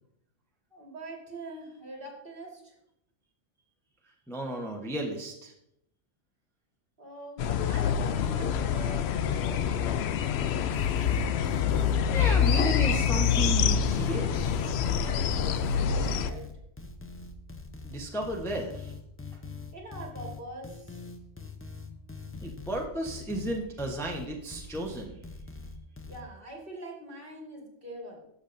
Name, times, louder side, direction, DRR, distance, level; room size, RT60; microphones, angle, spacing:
voice 1, 0.7-2.8 7.0-10.1 15.0-16.5 19.7-21.0 26.1-28.2, right 1 dB, 45° right, -1 dB, 2.2 m, -44 dB
voice 2, 4.3-5.5 12.1-14.3 17.8-18.9 22.4-25.1, right 1 dB, ahead, 0 dB, 0.8 m, -33 dB
sound 1, 7.4-16.3, left 7 dB, 65° left, 0.7 m, -26 dB
sound 2, 10.7-26.2, left 4 dB, 20° left, 0.4 m, -43 dB
12.0 x 7.1 x 2.6 m, 0.78 s
omnidirectional pair, 1.3 m